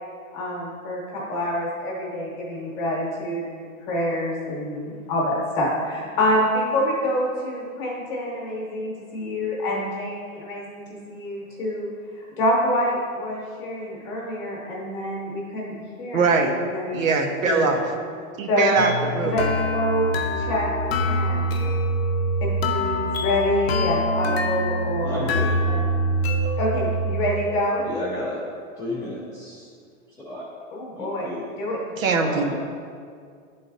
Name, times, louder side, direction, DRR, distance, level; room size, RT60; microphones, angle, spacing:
voice 1, 0.3-11.9 12.2-17.0 17.4-17.8 18.5-18.7 19.2-19.4 19.7-20.1 20.4-21.7 22.4-25.3 25.7-25.8 26.6-27.8 30.7-31.3 31.6-31.8, left 1 dB, 20° left, -4 dB, 1.0 m, -27 dB
voice 2, 16.1-16.5 16.9-17.8 18.4-19.4 32.0-32.5, right 4 dB, 75° right, 3 dB, 1.0 m, -22 dB
sound 1, 18.8-27.3, equal, 50° left, 0.6 m, -24 dB
voice 3, 25.0-25.6 27.8-28.4 28.8-29.7 30.2-30.4 31.0-31.4 32.2-32.5, left 1 dB, 5° right, -16 dB, 0.4 m, -32 dB
9.5 x 3.9 x 3.9 m, 2.2 s
supercardioid pair, 180°, 41 cm